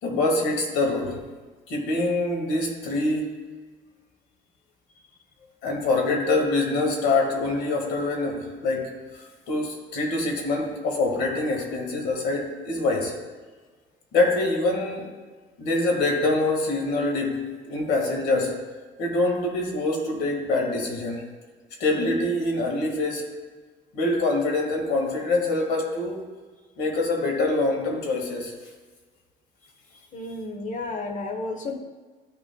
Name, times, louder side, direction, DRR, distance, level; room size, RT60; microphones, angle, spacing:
voice 1, 0.0-1.2 1.7-3.4 5.6-13.1 14.1-15.1 15.6-18.6 19.0-21.2 21.8-23.3 23.9-26.3 26.8-28.5, left 2 dB, 90° left, 1 dB, 1.9 m, -25 dB
voice 2, 30.1-31.8, left 2 dB, 50° left, 5 dB, 1.0 m, -32 dB
13.5 x 6.1 x 2.3 m, 1.4 s
cardioid pair, 110°, 17 cm